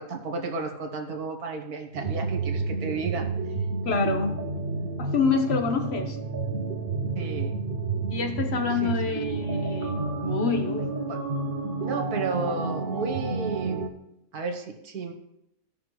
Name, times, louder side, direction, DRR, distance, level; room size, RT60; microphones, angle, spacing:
voice 1, 0.0-3.5 4.8-4.9 7.2-7.6 8.8-9.0 11.1-11.2 11.8-13.9 14.3-15.1, right 4 dB, 80° right, 4 dB, 1.7 m, -33 dB
sound 1, 1.9-13.9, right 3 dB, 45° right, 0.8 m, -30 dB
voice 2, 3.8-4.4 5.0-6.2 8.1-10.9, left 4 dB, 45° left, 5 dB, 1.2 m, -27 dB
16.5 x 5.8 x 3.2 m, 0.84 s
omnidirectional pair, 1.6 m